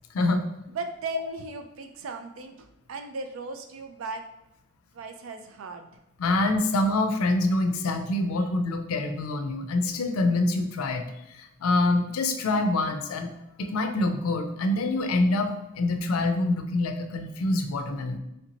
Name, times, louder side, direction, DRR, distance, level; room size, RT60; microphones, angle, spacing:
voice 1, 0.7-4.2 4.9-5.9, right 4 dB, 70° right, 6 dB, 0.4 m, -37 dB
voice 2, 6.2-11.0 11.3-13.3 13.6-18.2, left 2 dB, 90° left, 6 dB, 0.4 m, -25 dB
3.2 x 2.8 x 2.9 m, 0.90 s
head